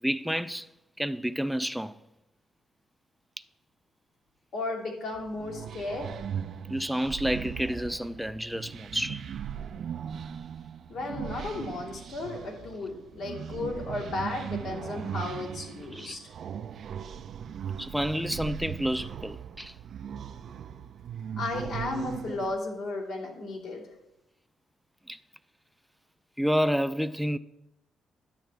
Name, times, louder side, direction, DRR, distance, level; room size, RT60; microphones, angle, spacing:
voice 1, 0.0-0.7 1.0-2.0 6.7-9.2 15.9-16.2 17.8-19.7 22.3-22.4 25.1-25.2 26.4-27.4, equal, ahead, 0.4 m, -29 dB
voice 2, 4.5-6.1 10.9-16.2 21.4-23.8, left 2 dB, 70° left, 2.7 m, -34 dB
sound 1, 5.1-22.6, right 8 dB, 60° right, 0.4 m, -39 dB
10.5 x 8.5 x 3.4 m
cardioid pair, 90°, 0 cm